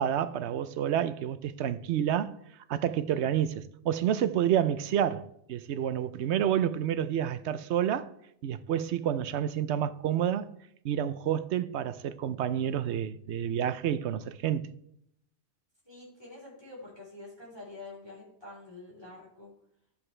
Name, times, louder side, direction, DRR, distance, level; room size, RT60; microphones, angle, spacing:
voice 1, 0.0-2.3 2.7-8.1 8.4-10.5 10.8-14.7, right 10 dB, 80° right, 0.9 m, -29 dB
voice 2, 15.8-19.5, left 2 dB, 25° left, 3.6 m, -47 dB
13.0 x 7.6 x 3.3 m
omnidirectional pair, 1.2 m